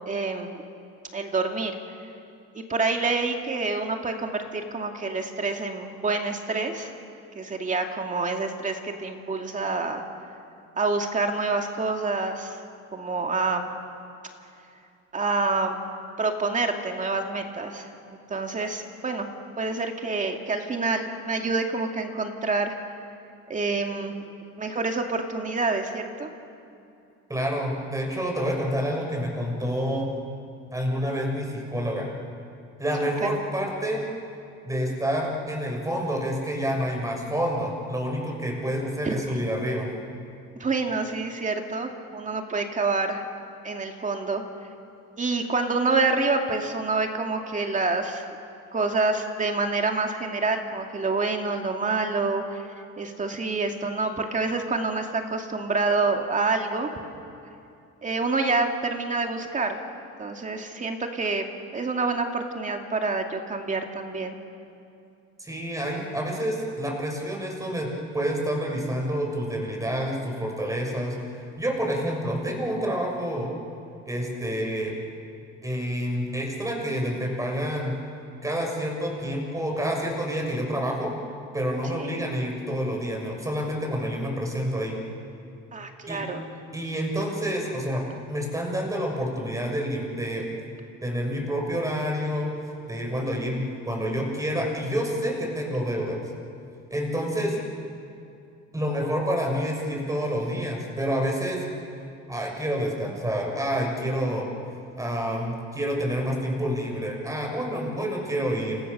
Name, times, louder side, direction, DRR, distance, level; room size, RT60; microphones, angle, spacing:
voice 1, 0.1-0.5 1.1-2.0 2.7-6.9 7.3-10.0 10.8-12.6 12.9-13.7 15.1-15.8 16.2-17.9 18.3-19.3 19.6-22.8 23.5-24.2 24.6-26.3 33.2-33.3 39.0-39.2 40.6-43.2 43.6-44.4 45.2-48.2 48.7-52.7 53.0-56.9 58.0-59.8 60.2-61.4 61.7-64.4 82.0-82.1 85.7-86.4, right 3 dB, 25° right, 3 dB, 2.3 m, -27 dB
voice 2, 27.3-30.1 30.7-32.1 32.8-34.0 34.6-39.9 65.4-71.2 71.6-73.5 74.0-74.9 75.6-77.9 78.4-81.1 81.5-85.0 86.1-86.2 86.7-88.0 88.3-90.5 91.0-92.5 92.9-96.2 96.9-97.6 98.7-101.6 102.3-104.5 104.9-108.8, equal, 10° right, 0 dB, 6.7 m, -28 dB
29.0 x 29.0 x 6.9 m, 2.6 s
cardioid pair, 130°, 29 cm